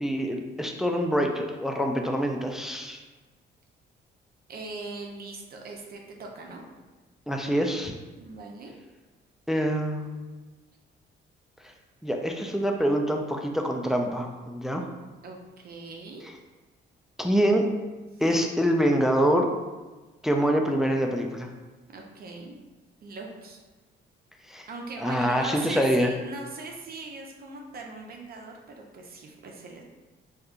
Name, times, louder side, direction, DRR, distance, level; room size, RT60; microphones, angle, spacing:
voice 1, 0.0-3.0 7.3-8.0 9.5-10.3 12.0-14.8 17.2-17.7 18.2-19.5 20.2-21.5 24.5-24.7 25.0-26.1, equal, ahead, 2 dB, 0.3 m, -25 dB
voice 2, 4.5-6.6 8.2-8.7 15.2-16.2 18.1-18.2 21.9-22.5 23.0-23.6 24.7-29.8, right 3 dB, 50° right, 1 dB, 0.5 m, -40 dB
3.4 x 2.7 x 2.4 m, 1.2 s
cardioid pair, 90°, 20 cm